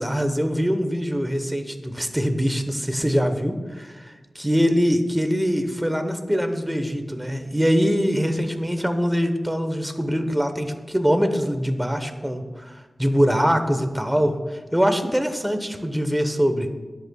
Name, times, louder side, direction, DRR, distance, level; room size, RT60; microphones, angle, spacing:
voice 1, 0.0-4.0 4.4-16.7, equal, 5° right, 7 dB, 1.0 m, -23 dB
21.0 x 8.2 x 2.3 m, 1.3 s
wide cardioid pair, 95°, 0 cm